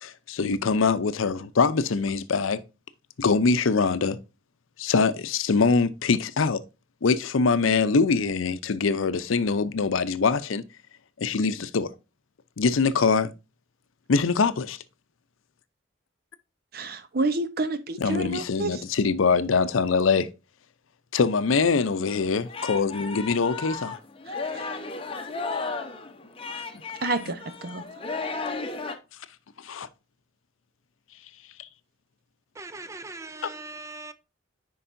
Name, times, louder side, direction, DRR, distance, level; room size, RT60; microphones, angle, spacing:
voice 1, 0.0-2.6 3.2-4.2 4.8-6.6 7.0-10.6 11.2-11.9 12.6-13.3 14.1-14.8 18.0-20.3 21.1-24.0 29.6-29.9 33.4-33.5, left 4 dB, 90° left, 0.6 m, -23 dB
voice 2, 16.7-18.8 24.3-24.8 27.0-28.0, right 2 dB, 50° right, 0.8 m, -30 dB
Singing, 22.1-28.9, left 4 dB, 30° left, 0.8 m, -34 dB
voice 3, 32.6-34.1, right 2 dB, 15° right, 0.4 m, -40 dB
10.0 x 4.7 x 2.6 m
head